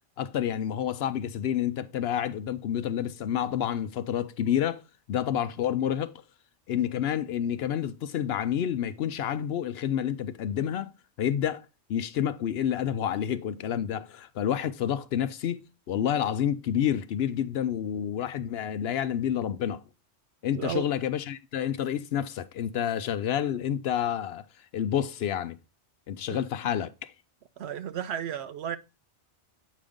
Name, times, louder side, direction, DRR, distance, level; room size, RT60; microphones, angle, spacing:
voice 1, 0.2-4.8 5.1-6.1 6.7-10.9 11.2-11.6 11.9-19.8 20.4-24.4 24.7-25.6 26.1-27.1, left 9 dB, 70° left, 0.8 m, -29 dB
voice 2, 27.6-28.8, right 9 dB, 75° right, 0.8 m, -33 dB
8.4 x 5.2 x 3.6 m
omnidirectional pair, 1.1 m